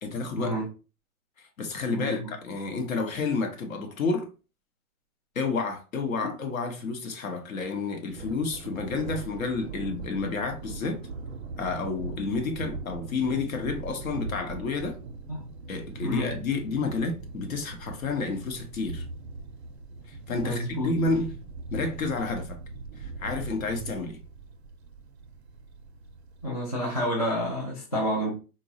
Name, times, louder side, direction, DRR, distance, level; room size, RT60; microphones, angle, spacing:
voice 1, 0.0-0.5 1.4-4.3 5.3-11.0 11.6-15.0 15.7-19.0 20.1-21.4 21.7-22.6 23.0-24.2, left 4 dB, 65° left, 0.9 m, -30 dB
voice 2, 1.9-2.2 6.2-6.3 15.3-15.4 16.0-16.3 20.4-20.9 26.4-28.3, equal, 30° left, 0.4 m, -29 dB
Thunder, 8.1-26.5, right 3 dB, 45° right, 0.4 m, -40 dB
3.9 x 2.2 x 2.6 m
hypercardioid pair, 175°, 45 cm